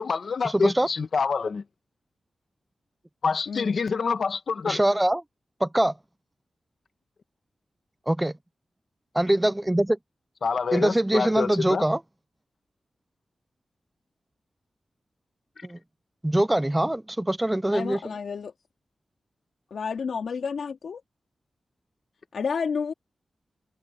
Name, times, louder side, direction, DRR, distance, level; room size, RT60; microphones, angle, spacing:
voice 1, 0.0-1.6 3.2-4.8 10.4-11.8 15.6-15.7, left 5 dB, 60° left, 1.6 m, -27 dB
voice 2, 0.5-0.9 4.7-5.2 5.6-5.9 8.1-8.3 9.1-10.0 10.7-12.0 15.6-15.8 16.2-18.0, right 1 dB, 10° right, 0.5 m, -23 dB
voice 3, 3.5-3.8 17.7-18.5 19.7-21.0 22.3-22.9, left 6 dB, 80° left, 2.5 m, -30 dB
wide cardioid pair, 135°, 0 cm